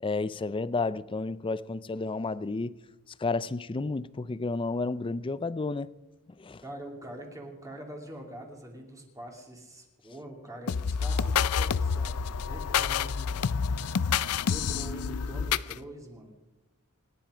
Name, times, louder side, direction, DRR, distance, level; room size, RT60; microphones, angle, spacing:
voice 1, 0.0-2.7 3.2-5.9 6.4-6.6, left 3 dB, 25° left, 0.4 m, -31 dB
voice 2, 6.6-13.5 14.4-16.3, right 1 dB, 15° right, 2.7 m, -44 dB
sound 1, 10.7-15.8, left 6 dB, 80° left, 0.5 m, -28 dB
27.0 x 10.5 x 5.0 m
head